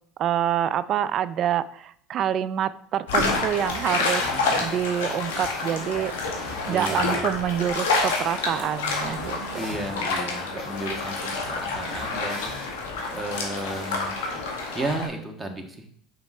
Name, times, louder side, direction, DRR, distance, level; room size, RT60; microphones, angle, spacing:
voice 1, 0.2-6.4 6.7-9.8, right 10 dB, 45° right, 16 dB, 0.4 m, -27 dB
sound 1, 3.1-15.1, left 3 dB, 90° left, 1.9 m, -28 dB
sound 2, 3.5-14.4, left 1 dB, 55° left, 3.3 m, -42 dB
voice 2, 4.2-4.7 6.7-7.2 9.5-12.5 13.1-14.2 14.7-16.0, right 1 dB, 15° right, 2 dB, 1.6 m, -33 dB
5.9 x 5.7 x 5.5 m, 0.63 s
supercardioid pair, 100°, 0 cm